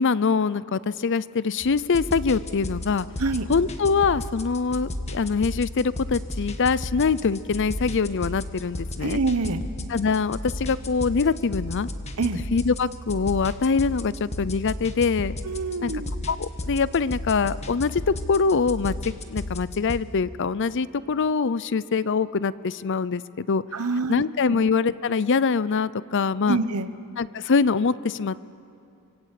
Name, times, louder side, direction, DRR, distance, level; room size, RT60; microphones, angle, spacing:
voice 1, 0.0-3.1 3.5-9.2 9.9-11.9 12.5-15.3 15.8-15.9 16.3-23.6 24.1-26.6 27.2-28.5, left 5 dB, 55° left, 18 dB, 0.6 m, -24 dB
sound 1, 1.6-20.0, left 1 dB, 30° left, 1.4 m, -34 dB
voice 2, 9.0-9.6 12.2-12.4 15.4-16.1 23.7-24.2 26.4-26.9, right 3 dB, 80° right, 11 dB, 1.2 m, -26 dB
26.0 x 22.5 x 8.3 m, 2.6 s
head